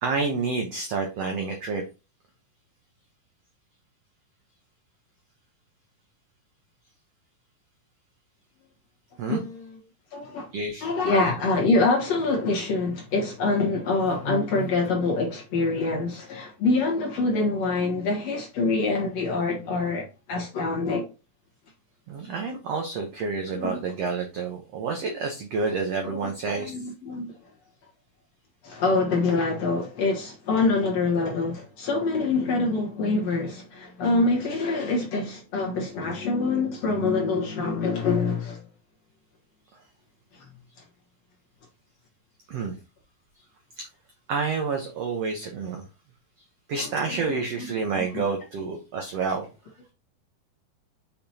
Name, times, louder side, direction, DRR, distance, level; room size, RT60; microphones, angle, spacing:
voice 1, 0.0-1.8 9.2-9.4 10.5-11.2 22.1-26.8 42.5-42.8 43.8-43.9 44.3-45.8 46.7-49.5, right 4 dB, 80° right, 1.4 m, -29 dB
voice 2, 9.3-9.8 10.1-10.5 10.8-21.1 23.5-23.8 26.0-26.3 26.6-27.3 28.6-38.7 40.3-40.5 46.8-47.7 48.1-48.3, left 3 dB, 55° left, 2.1 m, -25 dB
6.6 x 5.9 x 2.8 m
omnidirectional pair, 4.4 m